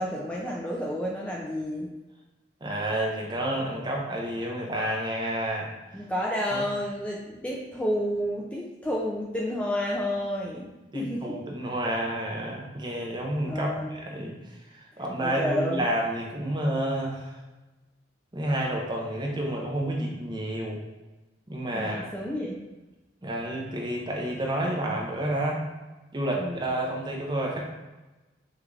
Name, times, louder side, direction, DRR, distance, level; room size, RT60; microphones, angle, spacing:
voice 1, 0.0-1.9 5.9-11.4 13.5-13.9 15.2-15.8 21.7-22.7 26.4-26.7, equal, 5° left, -3 dB, 0.4 m, -30 dB
voice 2, 2.6-5.7 6.5-6.7 10.9-14.3 14.7-17.4 18.3-20.8 21.5-22.0 23.2-25.6 26.1-27.7, right 1 dB, 25° right, -1 dB, 0.7 m, -30 dB
5.7 x 2.5 x 3.2 m, 1.1 s
head